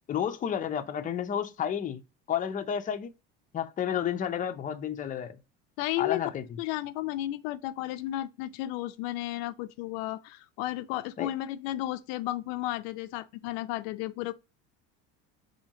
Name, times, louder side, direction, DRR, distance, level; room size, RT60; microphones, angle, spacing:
voice 1, 0.0-2.0 2.3-3.1 3.5-5.4 6.0-6.6 11.2-11.3, left 9 dB, 25° left, 0.5 m, -31 dB
voice 2, 5.8-6.2 6.6-14.3, left 15 dB, 75° left, 0.5 m, -33 dB
4.2 x 2.8 x 2.7 m
supercardioid pair, 110°, 31 cm